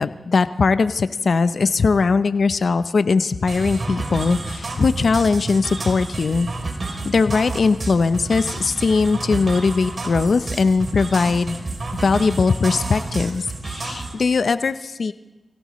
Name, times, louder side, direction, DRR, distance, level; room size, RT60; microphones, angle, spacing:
voice 1, 0.0-6.5 7.0-11.6 12.0-15.1, left 4 dB, 70° left, 12 dB, 0.7 m, -20 dB
sound 1, 3.5-14.1, right 2 dB, 55° right, 3.3 m, -30 dB
27.0 x 17.0 x 3.2 m, 1.0 s
cardioid pair, 40°, 0 cm